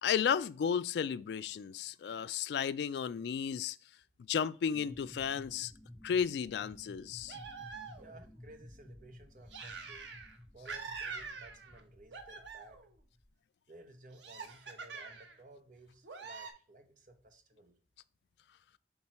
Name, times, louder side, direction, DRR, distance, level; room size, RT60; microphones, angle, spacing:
voice 1, 0.0-3.8 4.3-5.7 6.0-7.4, left 7 dB, 70° left, 0.3 m, -33 dB
sound 1, 4.7-13.3, left 1 dB, 5° left, 0.4 m, -55 dB
sound 2, 7.3-8.3 9.5-10.4 10.7-11.8 12.1-12.9 14.1-15.4 16.0-16.5, right 5 dB, 90° right, 0.9 m, -45 dB
voice 2, 8.0-10.1 10.5-12.8 13.7-17.7, right 2 dB, 45° right, 1.0 m, -56 dB
5.9 x 3.8 x 4.2 m
head